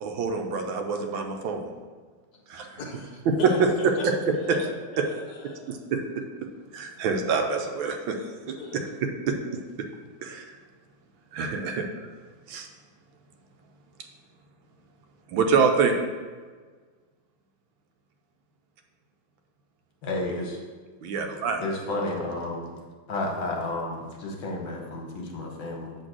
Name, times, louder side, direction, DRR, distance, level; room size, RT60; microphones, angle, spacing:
voice 1, 0.0-1.7 2.5-2.8 3.3-3.7 4.0-4.1 4.5-4.6 5.0-5.1 5.7-6.2 6.7-8.2 8.5-9.4 10.2-10.4 11.3-11.9 12.5-12.7 15.3-15.9 21.0-21.6, right 5 dB, 80° right, 4 dB, 1.5 m, -26 dB
voice 2, 2.8-4.1 4.4-4.6 4.9-5.9 8.2-8.8, left 3 dB, 60° left, -1 dB, 1.5 m, -40 dB
voice 3, 20.0-20.6 21.6-22.7 23.1-26.0, left 2 dB, 75° left, 0 dB, 1.9 m, -31 dB
7.9 x 3.3 x 6.1 m, 1.5 s
omnidirectional pair, 2.2 m